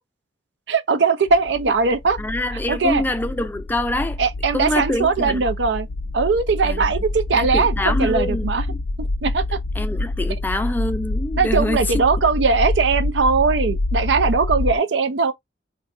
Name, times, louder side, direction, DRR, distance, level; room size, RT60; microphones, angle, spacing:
voice 1, 0.7-2.2 2.5-3.0 4.2-5.9 6.1-8.6 9.2-9.4 11.4-15.3, right 4 dB, 80° right, 0.5 m, -20 dB
sound 1, 1.3-14.8, left 2 dB, 60° left, 0.5 m, -26 dB
voice 2, 2.2-4.2 4.5-5.4 6.6-6.8 7.3-8.8 9.8-12.0, left 1 dB, 10° left, 0.3 m, -25 dB
4.0 x 2.2 x 2.5 m
head